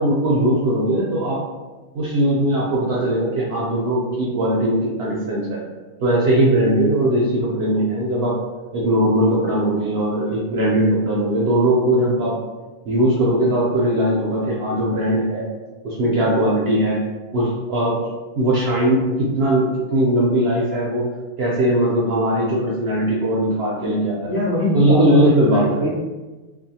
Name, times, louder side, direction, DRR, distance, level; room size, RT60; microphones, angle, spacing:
voice 1, 0.0-1.4 1.9-5.6 6.0-8.4 8.7-12.4 12.9-15.4 15.8-17.0 17.3-18.0 18.3-21.1 21.4-24.3 24.7-25.8, right 1 dB, 65° right, -5 dB, 0.6 m, -19 dB
voice 2, 24.3-25.9, left 1 dB, 60° left, -8 dB, 0.5 m, -22 dB
2.5 x 2.2 x 2.7 m, 1.2 s
omnidirectional pair, 1.4 m